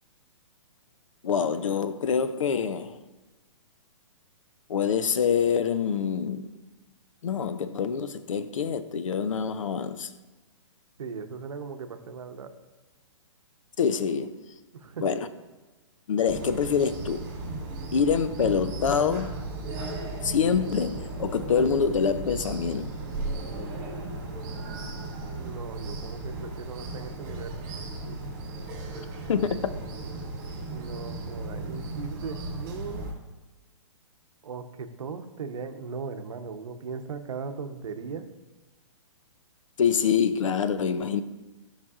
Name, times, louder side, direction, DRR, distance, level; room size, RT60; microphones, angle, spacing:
voice 1, 1.2-3.0 4.7-6.5 7.2-10.1 13.8-14.3 15.0-15.3 16.1-17.3 17.9-19.3 20.2-22.9 29.3-29.7 39.8-41.2, left 6 dB, 85° left, 0.6 m, -25 dB
voice 2, 11.0-12.5 14.7-15.2 25.4-27.6 30.7-33.1 34.4-38.3, right 5 dB, 85° right, 0.8 m, -38 dB
sound 1, 16.3-33.1, right 2 dB, 30° right, 2.5 m, -36 dB
12.5 x 5.7 x 2.4 m
hypercardioid pair, 170°, 16 cm